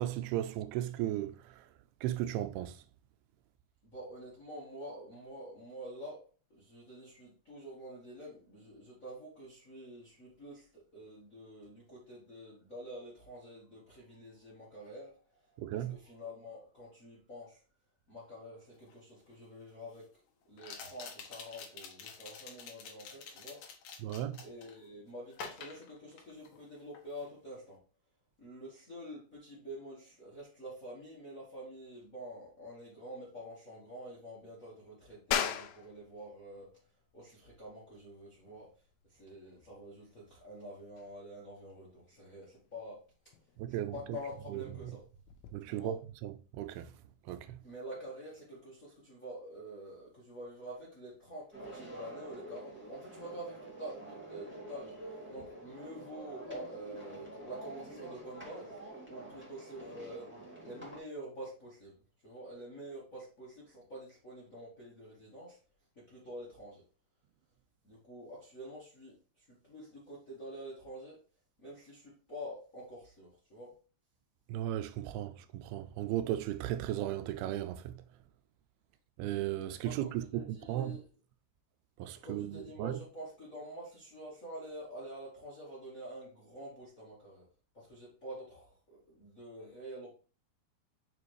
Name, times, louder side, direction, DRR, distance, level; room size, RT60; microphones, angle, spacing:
voice 1, 0.0-1.7 2.0-2.8 15.6-16.0 24.0-24.4 43.6-44.0 44.5-44.6 45.5-46.0 46.2-46.9 47.3-47.6 74.5-78.0 79.2-81.0 82.0-83.0, right 13 dB, 85° right, 2.5 m, -36 dB
voice 2, 3.8-6.2 6.5-15.2 15.5-17.6 18.1-20.1 20.5-23.6 24.4-27.8 28.4-36.7 37.1-38.7 39.1-43.0 43.7-45.0 45.6-46.0 47.6-58.8 59.1-60.3 60.6-61.9 62.2-65.6 65.9-66.8 67.8-71.2 71.6-73.7 79.8-81.0 82.1-87.5 87.7-90.1, equal, 40° left, 1.1 m, -47 dB
sound 1, 18.9-19.0 20.6-24.8 25.3-26.7 26.9-27.3, left 6 dB, 65° left, 1.9 m, -48 dB
sound 2, 35.3-45.5, left 9 dB, 85° left, 2.6 m, -42 dB
sound 3, 51.5-61.0, right 2 dB, 5° right, 0.9 m, -48 dB
6.3 x 5.0 x 3.2 m
omnidirectional pair, 4.4 m